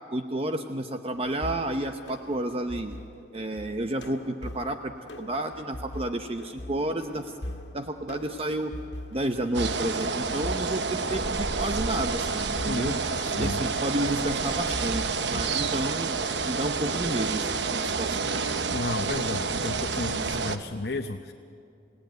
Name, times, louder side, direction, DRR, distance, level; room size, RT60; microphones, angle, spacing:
voice 1, 0.1-3.0 3.3-4.9 5.2-7.4 7.7-8.7 9.1-13.0 13.4-16.2 16.5-18.2, right 1 dB, 35° right, 6 dB, 0.8 m, -31 dB
sound 1, 1.1-15.2, left 1 dB, 80° left, 1.8 m, -41 dB
sound 2, 9.5-20.6, right 4 dB, 80° right, 1.0 m, -29 dB
voice 2, 12.7-13.6 18.7-21.3, left 2 dB, 65° left, 5 dB, 0.8 m, -33 dB
28.5 x 17.5 x 9.3 m, 2.6 s
head